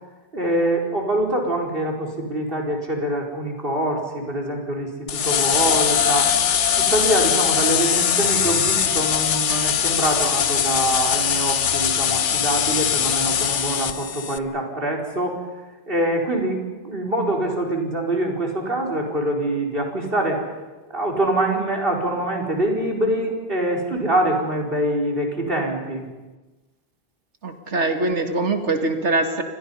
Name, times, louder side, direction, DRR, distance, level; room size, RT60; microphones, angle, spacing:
voice 1, 0.3-6.3 6.7-15.4 15.9-20.4 20.9-26.0, right 1 dB, 50° right, 0 dB, 4.5 m, -24 dB
sound 1, 5.1-14.4, left 8 dB, 90° left, 1.3 m, -21 dB
voice 2, 27.4-29.4, right 2 dB, 85° right, 6 dB, 2.5 m, -23 dB
30.0 x 24.5 x 5.6 m, 1.2 s
omnidirectional pair, 1.2 m